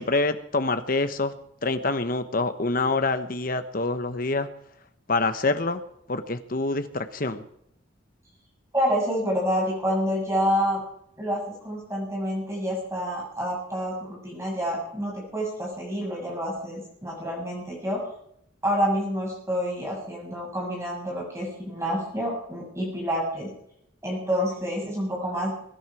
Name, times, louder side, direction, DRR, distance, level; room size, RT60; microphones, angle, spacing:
voice 1, 0.0-1.3 1.6-4.5 5.1-5.8 6.1-7.4, left 3 dB, 45° left, 9 dB, 1.2 m, -26 dB
voice 2, 8.7-10.8 11.2-18.1 18.6-23.5 24.0-25.5, equal, 15° right, -2 dB, 7.2 m, -28 dB
22.5 x 11.0 x 4.9 m, 0.72 s
head